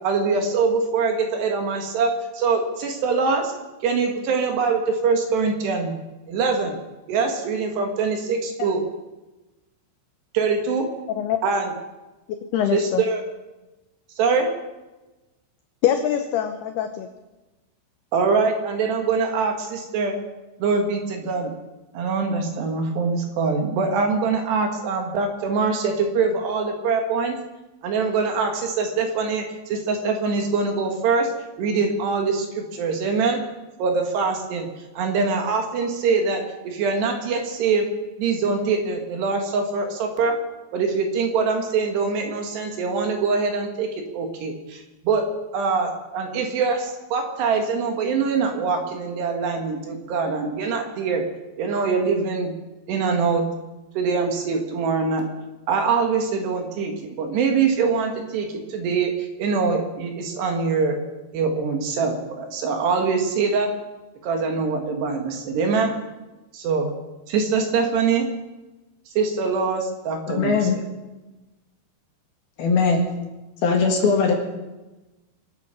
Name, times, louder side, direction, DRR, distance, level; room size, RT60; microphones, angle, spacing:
voice 1, 0.0-3.5 3.8-5.9 6.3-6.8 7.1-8.8 10.3-10.9 11.4-11.7 12.7-13.2 14.2-14.5 18.1-20.2 20.6-21.5 21.9-27.4 27.8-31.3 31.6-33.4 33.8-34.7 34.9-37.9 38.2-40.4 40.7-45.2 45.5-51.2 51.6-52.5 52.9-53.4 53.9-55.2 55.7-59.1 59.4-61.0 61.3-63.7 64.2-65.9 66.5-66.9 67.3-68.3 69.2-70.7, right 4 dB, 65° right, 4 dB, 3.4 m, -23 dB
voice 2, 12.5-13.0 15.8-17.1, left 10 dB, 80° left, 7 dB, 2.3 m, -23 dB
voice 3, 70.3-70.8 72.6-73.1 73.6-74.3, left 4 dB, 60° left, 2 dB, 3.2 m, -19 dB
24.5 x 9.0 x 6.3 m, 1.1 s
omnidirectional pair, 5.8 m